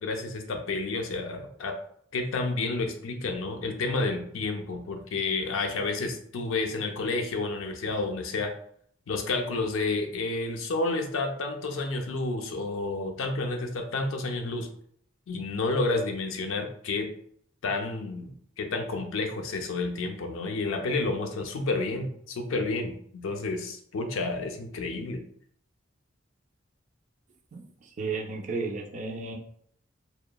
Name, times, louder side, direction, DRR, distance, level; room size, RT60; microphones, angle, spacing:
voice 1, 0.0-1.8 2.1-8.5 9.1-14.7 15.3-17.1 17.6-25.2, left 3 dB, 90° left, 4 dB, 0.4 m, -30 dB
voice 2, 27.5-29.4, right 4 dB, 40° right, 2 dB, 0.3 m, -34 dB
2.8 x 2.0 x 2.2 m, 0.65 s
head